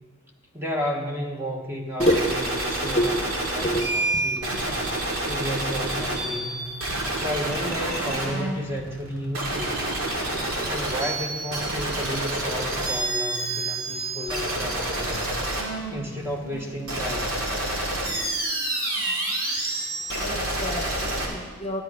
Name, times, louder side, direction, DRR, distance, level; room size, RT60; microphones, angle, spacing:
voice 1, 0.5-3.2 3.5-4.8 5.2-6.7 7.1-9.9 10.6-15.4 15.9-17.4, equal, 10° right, 1 dB, 1.0 m, -32 dB
sound 1, 2.0-21.3, right 2 dB, 80° right, 2.2 m, -28 dB
voice 2, 20.2-21.8, equal, 30° left, 3 dB, 0.8 m, -26 dB
12.0 x 9.9 x 4.7 m, 1.4 s
head